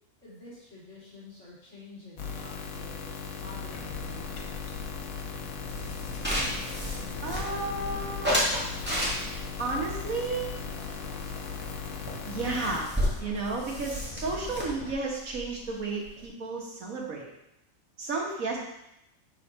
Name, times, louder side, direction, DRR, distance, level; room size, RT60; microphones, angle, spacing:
voice 1, 0.2-3.1 3.4-4.6, left 2 dB, 55° left, -9 dB, 3.3 m, -48 dB
sound 1, 2.2-12.8, left 5 dB, 80° left, 1.3 m, -38 dB
sound 2, 3.7-14.9, left 3 dB, 40° left, 0.5 m, -44 dB
sound 3, 5.7-7.8 8.2-9.5 10.1-11.4 11.6-11.8 12.1-12.2 12.4-16.2, equal, 10° right, 1.8 m, -32 dB
voice 2, 7.2-8.4 9.6-10.5 12.3-12.9 13.2-17.3 18.0-18.6, right 3 dB, 75° right, -2 dB, 1.9 m, -32 dB
7.0 x 4.1 x 5.3 m, 0.82 s
omnidirectional pair, 1.4 m